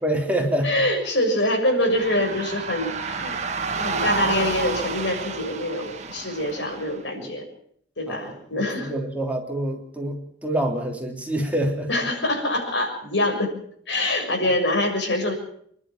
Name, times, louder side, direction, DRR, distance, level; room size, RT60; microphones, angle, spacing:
voice 1, 0.0-0.7 7.2-7.3 8.1-11.9, right 1 dB, 10° right, 1 dB, 3.3 m, -26 dB
voice 2, 0.6-3.4 3.8-7.4 8.0-8.9 11.9-13.5 13.9-15.3, left 1 dB, 80° left, 3 dB, 6.6 m, -24 dB
sound 1, 1.8-7.0, right 4 dB, 40° right, 2.0 m, -30 dB
27.0 x 11.5 x 9.1 m, 0.66 s
head